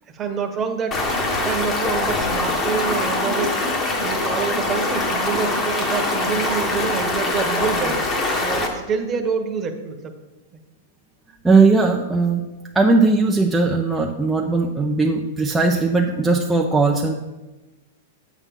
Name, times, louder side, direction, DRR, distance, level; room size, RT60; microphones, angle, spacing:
voice 1, 0.1-3.6 4.0-8.1 8.4-10.1, right 5 dB, 25° right, 5 dB, 1.1 m, -27 dB
Stream, 0.9-8.7, left 2 dB, 25° left, 1.4 m, -23 dB
voice 2, 11.4-12.5 12.7-17.1, right 3 dB, 5° right, 0 dB, 0.5 m, -18 dB
8.0 x 7.2 x 3.6 m, 1.1 s
hypercardioid pair, 130°, 0 cm